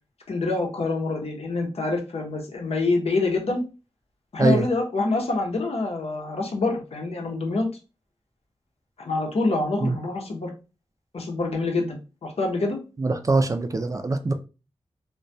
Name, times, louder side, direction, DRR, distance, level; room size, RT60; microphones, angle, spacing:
voice 1, 0.3-3.6 4.3-7.7 9.0-10.5 11.1-12.8, left 3 dB, 70° left, 0.7 m, -26 dB
voice 2, 13.0-14.3, right 3 dB, 30° right, 0.3 m, -23 dB
2.2 x 2.1 x 2.6 m
wide cardioid pair, 70°, 11 cm